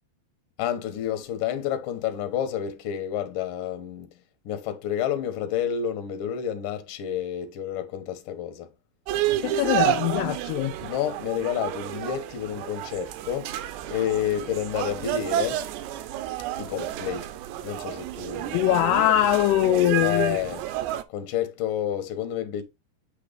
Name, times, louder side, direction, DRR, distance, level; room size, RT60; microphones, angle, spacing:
voice 1, 0.6-8.7 10.8-13.5 13.9-15.6 16.6-18.7 20.0-20.6 21.1-22.6, left 10 dB, 65° left, 2.4 m, -30 dB
sound 1, 9.1-21.0, right 13 dB, 80° right, 2.9 m, -30 dB
voice 2, 9.4-10.7 18.5-20.4, left 14 dB, 80° left, 2.6 m, -22 dB
8.7 x 3.3 x 5.1 m
omnidirectional pair, 4.9 m